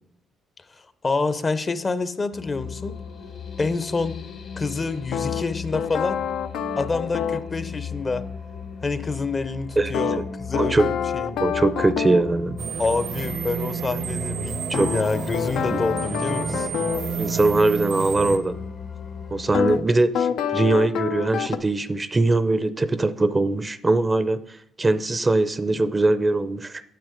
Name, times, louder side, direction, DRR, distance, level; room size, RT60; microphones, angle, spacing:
voice 1, 0.8-3.0 3.6-4.2 4.6-6.2 6.8-8.2 8.8-11.4 12.8-16.7, left 3 dB, 35° left, 12 dB, 0.7 m, -27 dB
sound 1, 2.3-19.8, left 6 dB, 65° left, 1.2 m, -37 dB
sound 2, 5.1-7.5 9.9-12.3 14.7-17.1 19.5-19.8 20.1-21.6, left 7 dB, 85° left, 0.5 m, -27 dB
voice 2, 10.6-10.9 11.4-12.6 14.7-14.9 15.7-15.8 17.2-18.6 19.3-26.8, right 2 dB, 25° right, 13 dB, 0.5 m, -21 dB
sound 3, 12.6-18.4, right 6 dB, 85° right, 1.0 m, -30 dB
9.2 x 7.0 x 5.1 m, 0.72 s
cardioid pair, 90°, 0 cm